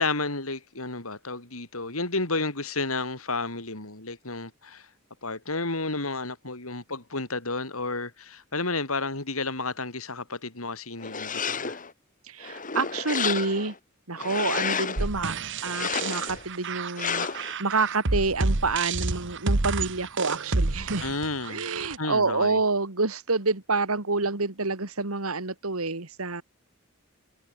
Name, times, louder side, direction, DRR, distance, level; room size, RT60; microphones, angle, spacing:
voice 1, 0.0-4.9 5.2-11.8 21.0-21.6 22.0-22.6, left 3 dB, 80° left, 5.4 m, -31 dB
sound 1, 11.0-11.9 12.4-13.8 14.2-15.1 15.6-16.4 17.0-17.5, left 6 dB, 40° left, 3.7 m, -31 dB
voice 2, 12.3-13.7 14.1-15.4 15.6-21.1 21.5-26.4, right 3 dB, 85° right, 2.5 m, -28 dB
sound 2, 15.0-22.0, right 3 dB, 60° right, 1.4 m, -29 dB
head